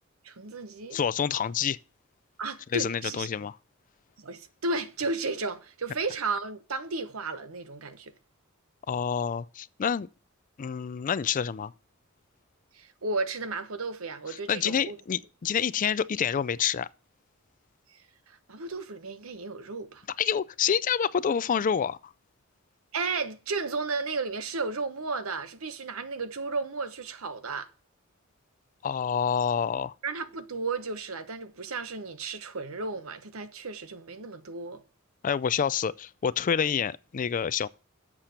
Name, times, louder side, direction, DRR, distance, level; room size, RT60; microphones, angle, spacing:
voice 1, 0.2-1.0 2.4-3.3 4.2-8.1 12.7-15.0 17.9-20.0 22.9-27.7 30.0-34.8, right 3 dB, 90° right, 1.0 m, -34 dB
voice 2, 0.9-1.8 2.7-3.5 8.9-10.1 10.6-11.7 14.5-16.9 20.2-22.1 28.8-29.9 35.2-37.7, left 7 dB, 40° left, 0.4 m, -27 dB
7.5 x 6.6 x 5.7 m
head